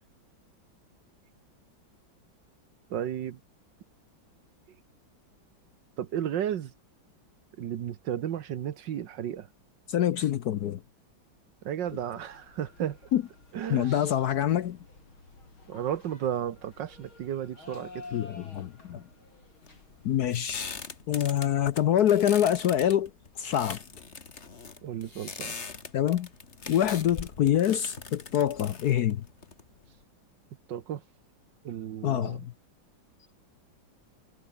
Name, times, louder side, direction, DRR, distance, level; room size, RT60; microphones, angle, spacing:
voice 1, 2.9-3.4 6.0-6.7 7.6-9.5 11.6-13.0 13.5-14.1 15.7-18.0 24.8-25.6 30.7-31.0 31.6-32.5, right 10 dB, 65° right, 1.7 m, -33 dB
voice 2, 9.9-10.8 13.1-13.2 13.7-14.8 18.1-19.0 20.0-20.8 21.1-23.1 23.4-23.8 25.9-26.3 26.7-29.3 32.0-32.5, left 10 dB, 65° left, 1.1 m, -25 dB
sound 1, 11.9-20.2, left 3 dB, 90° left, 7.5 m, -51 dB
sound 2, 19.6-30.0, left 5 dB, 35° left, 2.1 m, -42 dB
omnidirectional pair, 2.2 m